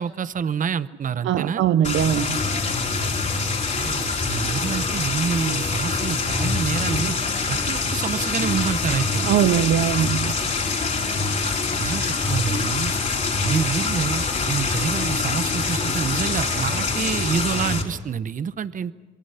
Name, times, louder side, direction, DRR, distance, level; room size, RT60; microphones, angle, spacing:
voice 1, 0.0-1.6 3.7-7.2 7.5-9.3 11.8-12.9 13.4-18.9, right 7 dB, 40° right, 15 dB, 0.8 m, -27 dB
voice 2, 1.2-2.4 9.2-10.3, right 10 dB, 75° right, 13 dB, 0.8 m, -21 dB
sound 1, 1.8-17.8, left 4 dB, 40° left, 3.9 m, -24 dB
27.0 x 23.0 x 5.7 m, 1.3 s
cardioid pair, 90°, 20 cm